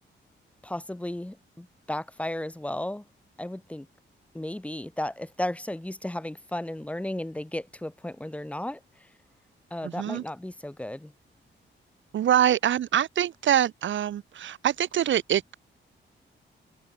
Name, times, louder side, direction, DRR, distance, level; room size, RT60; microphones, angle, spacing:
voice 1, 0.6-3.0 3.4-3.9 4.3-8.8 9.7-11.1, left 1 dB, 5° left, 3.4 m, -34 dB
voice 2, 9.8-10.2 12.1-15.5, right 10 dB, 70° right, 1.0 m, -24 dB
open air
wide cardioid pair, 160°, 20 cm